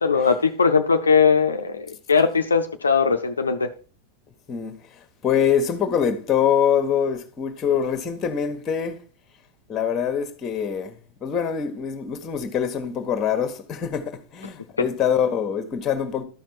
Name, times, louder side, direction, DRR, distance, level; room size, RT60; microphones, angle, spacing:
voice 1, 0.0-3.7, left 5 dB, 75° left, 0.5 m, -20 dB
voice 2, 4.5-9.0 9.7-16.2, left 8 dB, 25° left, 1.3 m, -24 dB
12.0 x 5.8 x 4.5 m
figure-of-eight pair, 90°, 0 cm